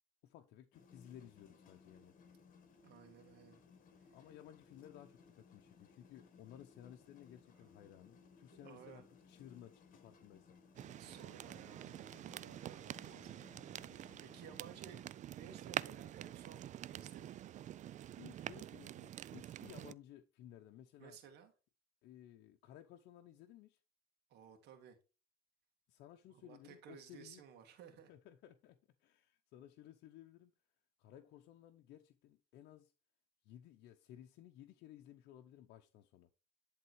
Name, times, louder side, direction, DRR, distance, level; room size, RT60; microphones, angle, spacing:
voice 1, 0.2-2.2 4.1-10.6 18.2-21.2 22.0-23.8 25.9-27.4 28.1-30.5 31.0-32.9 33.4-36.3, left 11 dB, 80° left, 0.8 m, -57 dB
sound 1, 0.7-14.8, left 5 dB, 55° left, 1.7 m, -63 dB
voice 2, 2.8-3.6 7.5-7.7 8.5-9.1 11.0-17.4 21.0-21.5 24.3-25.0 26.3-28.1, right 7 dB, 80° right, 1.9 m, -57 dB
sound 2, 10.7-19.9, right 12 dB, 45° right, 0.4 m, -47 dB
11.0 x 3.6 x 4.5 m
cardioid pair, 110°, 17 cm